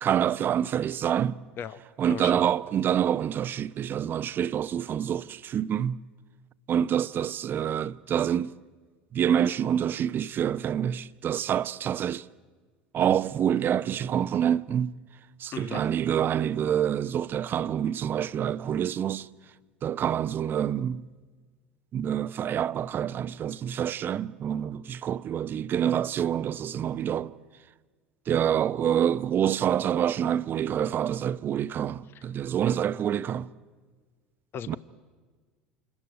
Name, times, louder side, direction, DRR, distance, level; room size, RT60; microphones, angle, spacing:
voice 1, 0.0-1.4 2.0-6.0 6.7-8.5 9.1-12.3 12.9-15.0 15.4-19.3 19.8-21.0 21.9-27.3 28.3-33.5 34.7-34.8, right 9 dB, 40° right, 0.8 m, -27 dB
voice 2, 2.1-2.4 15.5-15.9 32.1-32.2 34.5-34.8, left 8 dB, 45° left, 1.0 m, -37 dB
27.5 x 22.0 x 9.6 m
hypercardioid pair, 75°, 5 cm